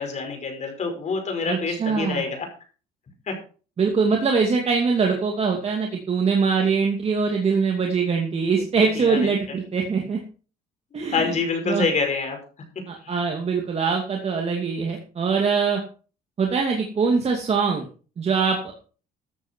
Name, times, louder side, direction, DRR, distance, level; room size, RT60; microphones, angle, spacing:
voice 1, 0.0-2.5 3.3-3.4 8.8-9.6 11.1-12.4 13.0-13.2, left 4 dB, 45° left, 4 dB, 5.4 m, -27 dB
voice 2, 1.5-2.2 3.8-10.2 10.9-11.4 11.7-11.9 12.9-15.8 16.4-17.9 18.2-18.7, right 5 dB, 40° right, 2 dB, 2.5 m, -23 dB
14.0 x 8.9 x 4.6 m, 0.38 s
cardioid pair, 110°, 17 cm